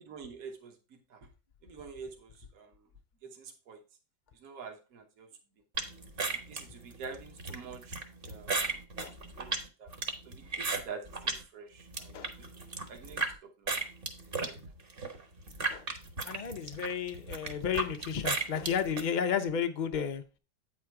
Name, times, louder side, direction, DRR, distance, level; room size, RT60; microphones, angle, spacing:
voice 1, 0.1-0.7 1.1-1.2 1.6-2.7 3.2-3.8 4.4-5.3 6.5-8.0 8.2-8.8 9.4-9.5 9.8-9.9 10.2-12.2 12.9-13.3 13.6-13.7 14.4-14.6, right 5 dB, 60° right, 1.6 m, -46 dB
sound 1, 5.8-11.4 11.8-13.3 13.7-19.1, right 3 dB, 40° right, 1.2 m, -35 dB
voice 2, 16.2-20.2, left 7 dB, 90° left, 0.4 m, -32 dB
8.7 x 4.3 x 4.6 m
omnidirectional pair, 1.7 m